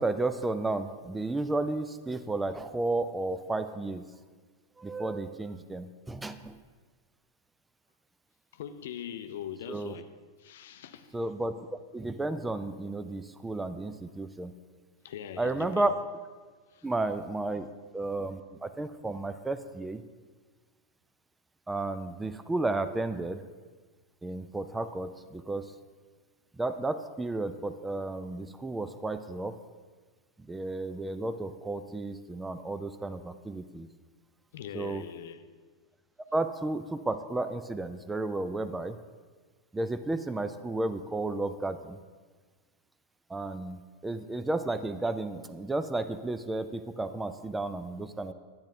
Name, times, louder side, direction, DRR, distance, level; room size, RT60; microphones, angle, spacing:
voice 1, 0.0-4.1 4.8-6.6 9.7-9.9 11.1-11.7 11.9-14.6 15.4-15.9 16.8-17.7 17.9-20.0 21.7-23.4 24.2-25.7 26.6-29.6 30.5-33.9 34.7-35.0 36.3-39.0 39.7-42.0 43.3-48.3, right 2 dB, 10° right, 0.3 m, -32 dB
voice 2, 8.5-10.1 10.4-11.2 15.0-15.9 16.7-16.9 34.5-35.4, left 9 dB, 55° left, 0.4 m, -41 dB
10.0 x 9.1 x 2.6 m
figure-of-eight pair, 90°, 0 cm